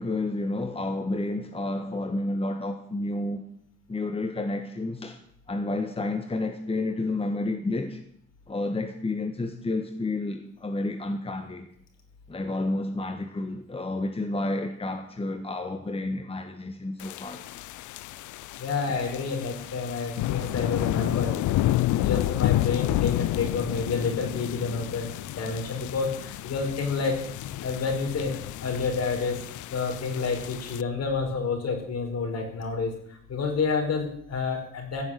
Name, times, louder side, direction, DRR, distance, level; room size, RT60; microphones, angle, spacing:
voice 1, 0.0-3.4 3.9-5.2 5.5-8.0 8.5-11.7 12.3-17.4, left 2 dB, 20° left, 1.4 m, -30 dB
sound 1, 17.0-30.8, left 15 dB, 75° left, 0.5 m, -30 dB
voice 2, 18.6-21.4 21.9-25.1 25.3-27.2 27.6-29.4 29.7-35.0, left 4 dB, 55° left, 4.9 m, -29 dB
15.5 x 7.4 x 9.2 m
cardioid pair, 90°, 30 cm